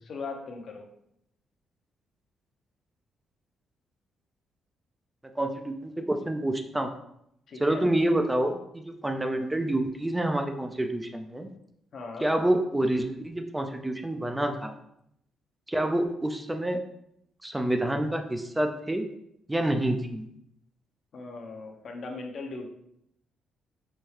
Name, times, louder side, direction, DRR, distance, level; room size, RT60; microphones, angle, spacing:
voice 1, 0.0-0.9 7.5-7.9 9.1-9.5 11.9-12.3 21.1-22.7, left 3 dB, 55° left, 3 dB, 0.7 m, -39 dB
voice 2, 5.4-6.9 7.6-11.5 12.2-14.7 15.7-16.8 17.4-19.1 19.5-20.3, right 1 dB, 10° right, 5 dB, 0.4 m, -27 dB
4.3 x 2.3 x 3.2 m, 0.76 s
cardioid pair, 90°, 0 cm